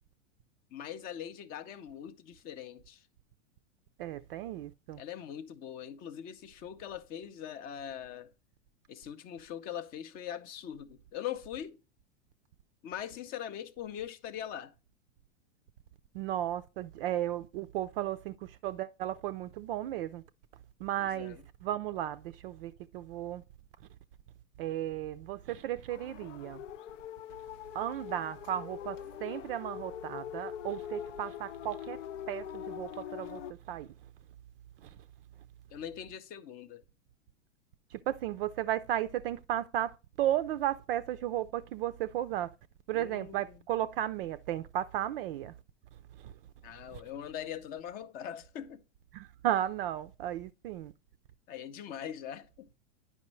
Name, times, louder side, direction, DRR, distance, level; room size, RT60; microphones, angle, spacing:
voice 1, 0.7-3.0 4.9-8.3 8.9-11.8 12.8-14.7 21.0-21.4 35.7-36.8 42.9-43.6 46.6-48.8 51.5-52.7, left 9 dB, 25° left, 0.4 m, -42 dB
voice 2, 4.0-5.0 16.1-20.2 20.8-23.4 24.6-26.6 27.7-32.0 32.3-33.4 33.7-33.9 37.9-39.9 40.2-42.5 42.9-45.5 46.2-46.3 46.9-47.0 49.1-50.9, right 12 dB, 50° right, 0.4 m, -34 dB
sound 1, 25.9-33.5, left 11 dB, 75° left, 0.5 m, -43 dB
9.7 x 5.3 x 3.1 m
hypercardioid pair, 130°, 37 cm